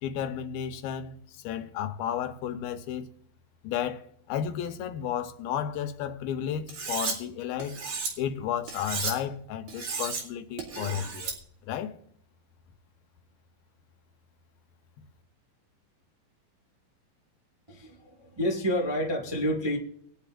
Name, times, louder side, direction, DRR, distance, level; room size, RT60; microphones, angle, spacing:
voice 1, 0.0-3.1 3.6-7.8 8.2-11.4 11.6-11.9, left 9 dB, 85° left, 2.7 m, -33 dB
Cutlery silverware, 6.7-7.2 7.6-8.1 8.7-9.1 9.7-10.2 10.6-11.4, right 4 dB, 70° right, 4.0 m, -33 dB
voice 2, 17.7-19.8, equal, 40° right, 0.3 m, -29 dB
21.0 x 10.5 x 2.6 m
omnidirectional pair, 4.2 m